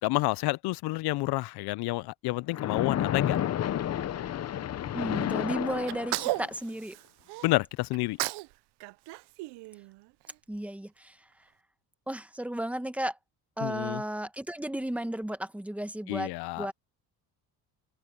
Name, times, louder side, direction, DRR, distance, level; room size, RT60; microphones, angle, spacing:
voice 1, 0.0-3.4 7.4-8.2 13.6-14.0 16.1-16.7, left 20 dB, 75° left, 0.5 m, -29 dB
Splash splatter, 2.5-6.5, left 11 dB, 40° left, 0.8 m, -31 dB
voice 2, 4.9-7.0 10.5-11.2 12.1-13.2 13.6-16.3 16.6-16.7, right 1 dB, 5° right, 1.0 m, -34 dB
Sneeze, 5.9-7.5 7.9-8.5 8.8-10.3, right 21 dB, 90° right, 0.6 m, -34 dB
open air
cardioid pair, 140°, 39 cm